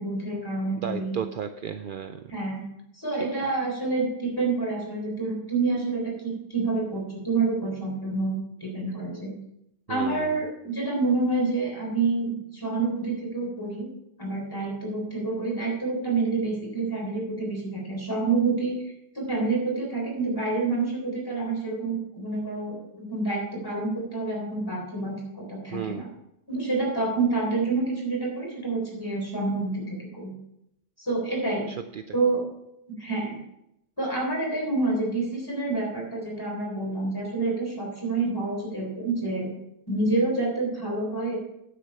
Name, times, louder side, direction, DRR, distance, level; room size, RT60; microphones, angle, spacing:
voice 1, 0.0-1.2 2.3-2.6 2.9-9.3 9.9-13.9 14.2-18.7 19.1-26.1 26.5-30.3 31.0-31.7 32.1-32.4 32.9-33.4 34.0-39.5 39.9-41.4, right 3 dB, 20° left, -2 dB, 3.8 m, -28 dB
voice 2, 0.8-2.2 3.2-3.3 9.9-10.4 25.7-26.1 31.7-32.2, right 8 dB, 60° right, 8 dB, 0.7 m, -34 dB
9.7 x 7.9 x 5.4 m, 0.81 s
omnidirectional pair, 1.1 m